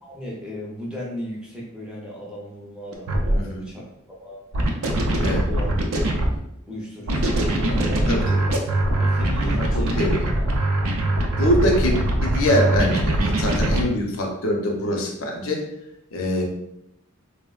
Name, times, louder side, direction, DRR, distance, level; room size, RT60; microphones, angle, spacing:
voice 1, 0.0-3.9 4.2-4.4 5.3-6.4 6.7-8.2 9.0-10.0 10.4-10.6, left 1 dB, 5° right, -5 dB, 0.5 m, -36 dB
sound 1, 2.9-3.4 4.5-6.4 7.1-13.8, right 1 dB, 85° right, 0.5 m, -22 dB
voice 2, 3.3-3.7 5.2-5.5 8.1-8.4 9.4-10.2 11.4-15.7 16.1-16.4, equal, 70° left, 1 dB, 0.6 m, -24 dB
3.3 x 2.0 x 2.3 m, 0.79 s
head